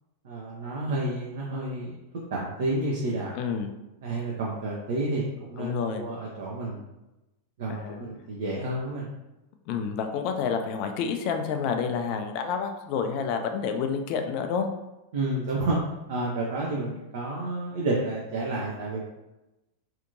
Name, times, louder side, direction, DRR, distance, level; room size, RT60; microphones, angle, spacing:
voice 1, 0.2-2.0 2.3-3.3 4.0-6.8 7.6-9.1 15.1-15.8 16.1-19.0, right 2 dB, 55° right, -4 dB, 0.5 m, -30 dB
voice 2, 3.3-3.7 5.6-6.1 7.7-8.0 9.7-14.7, left 6 dB, 45° left, 6 dB, 0.3 m, -29 dB
2.7 x 2.5 x 2.5 m, 0.99 s
figure-of-eight pair, 90°, 0 cm